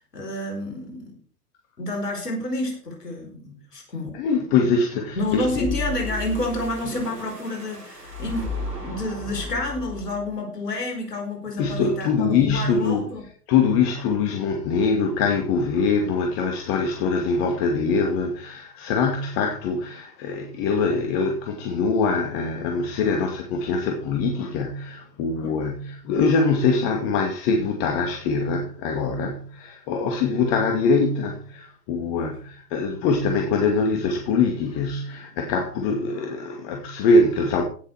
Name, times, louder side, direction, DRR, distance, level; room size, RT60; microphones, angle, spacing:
voice 1, 0.1-1.2 1.8-4.1 5.1-13.2 25.4-25.6 32.1-32.3, left 2 dB, 80° left, 4.8 m, -29 dB
voice 2, 4.1-5.7 11.6-13.1 13.5-37.6, left 4 dB, 40° left, 2.2 m, -23 dB
sound 1, 5.1-10.4, left 2 dB, 85° right, 7.1 m, -34 dB
17.0 x 7.0 x 4.7 m
figure-of-eight pair, 110°, 47 cm